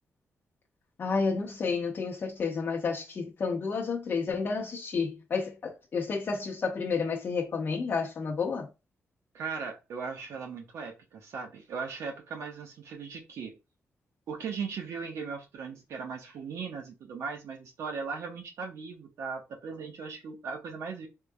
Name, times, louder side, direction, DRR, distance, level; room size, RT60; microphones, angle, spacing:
voice 1, 1.0-8.7, left 5 dB, 45° left, 1.0 m, -31 dB
voice 2, 9.3-13.5 14.3-21.1, right 5 dB, 85° right, 1.3 m, -38 dB
3.8 x 3.4 x 2.4 m
wide cardioid pair, 150°, 5 cm